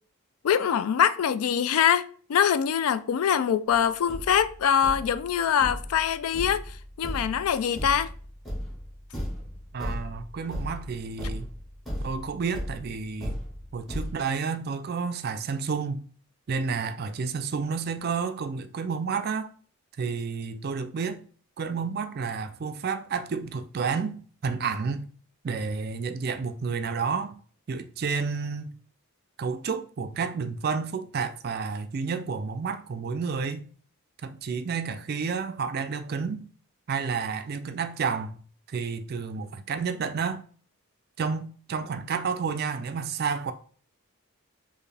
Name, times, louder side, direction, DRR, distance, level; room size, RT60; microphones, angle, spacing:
voice 1, 0.4-6.7 7.0-8.1, left 8 dB, 80° left, 0.3 m, -24 dB
Thump thud, 3.7-3.8 4.1-14.1, equal, ahead, 1.1 m, -36 dB
voice 2, 9.7-11.5 12.0-13.4 13.7-16.0 16.5-19.5 20.0-21.2 21.6-25.1 25.4-27.4 27.7-28.7 29.4-33.7 34.2-36.5 36.9-38.4 38.7-40.4 41.2-43.5, right 5 dB, 45° right, 0.3 m, -30 dB
4.5 x 2.7 x 3.3 m
head